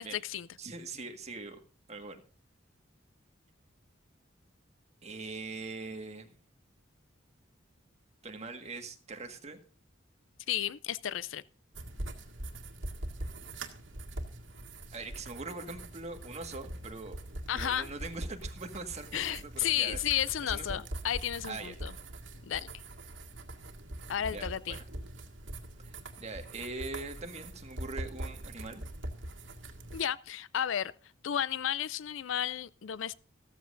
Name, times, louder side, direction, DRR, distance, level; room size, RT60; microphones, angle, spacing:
voice 1, 0.0-0.5 10.5-11.4 17.5-17.9 19.1-21.9 22.4-22.7 24.1-24.8 29.9-30.9 31.2-33.1, left 10 dB, 85° left, 0.5 m, -33 dB
voice 2, 0.6-1.6 1.9-2.2 5.0-6.3 8.2-9.6 14.9-17.2 17.5-20.0 20.4-20.8 21.5-21.8 24.3-24.9 25.8-28.8, right 3 dB, 35° right, 1.7 m, -42 dB
sound 1, 11.7-30.0, right 1 dB, 85° right, 1.9 m, -42 dB
15.0 x 14.0 x 2.6 m
head